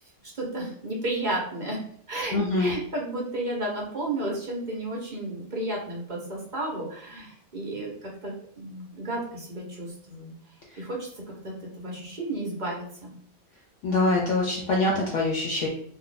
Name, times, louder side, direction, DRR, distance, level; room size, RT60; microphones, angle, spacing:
voice 1, 0.3-1.8 2.1-10.3 10.8-13.1, right 1 dB, 45° right, -2 dB, 0.6 m, -33 dB
voice 2, 2.3-2.8 10.7-10.8 13.8-15.7, left 2 dB, 65° left, -1 dB, 0.8 m, -24 dB
2.6 x 2.3 x 3.8 m, 0.62 s
omnidirectional pair, 1.5 m